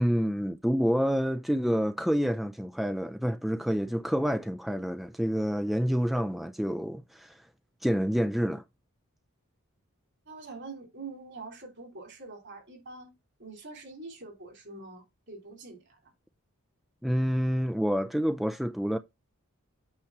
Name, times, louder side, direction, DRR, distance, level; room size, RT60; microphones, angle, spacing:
voice 1, 0.0-7.4 7.8-8.6 17.0-19.0, equal, ahead, 0.3 m, -28 dB
voice 2, 10.3-16.0, right 3 dB, 55° right, 2.9 m, -45 dB
8.7 x 3.1 x 5.8 m
head